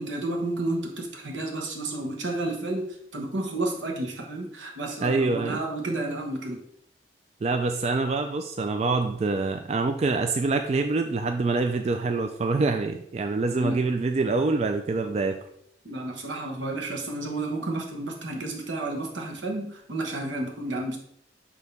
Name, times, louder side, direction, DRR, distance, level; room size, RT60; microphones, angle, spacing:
voice 1, 0.0-6.7 13.6-13.8 15.8-21.0, right 2 dB, 85° right, 1 dB, 1.1 m, -31 dB
voice 2, 5.0-5.6 7.4-15.4, right 3 dB, 35° right, 6 dB, 0.3 m, -25 dB
6.2 x 2.8 x 5.3 m, 0.71 s
head